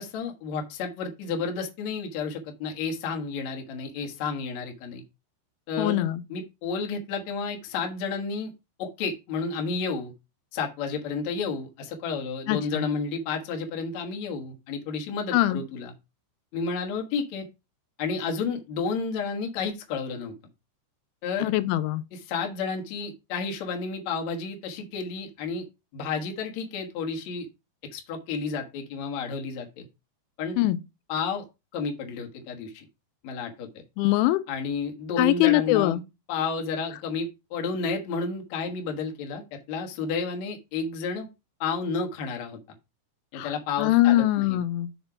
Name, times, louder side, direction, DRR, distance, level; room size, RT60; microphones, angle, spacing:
voice 1, 0.0-5.0 5.7-8.5 8.8-10.1 10.5-15.9 16.5-17.5 18.0-20.3 21.2-21.5 22.1-25.7 25.9-27.5 27.9-29.9 30.4-30.6 31.1-31.5 31.7-32.9 33.2-33.8 34.5-36.0 36.3-41.3 41.6-42.6 43.3-44.6, left 5 dB, 65° left, 1.8 m, -31 dB
voice 2, 5.8-6.2 12.5-12.8 15.3-15.6 21.4-22.0 30.6-30.8 34.0-34.4 35.2-36.0 43.4-43.5 43.8-44.9, left 16 dB, 85° left, 3.0 m, -22 dB
6.6 x 4.4 x 5.6 m
omnidirectional pair, 5.4 m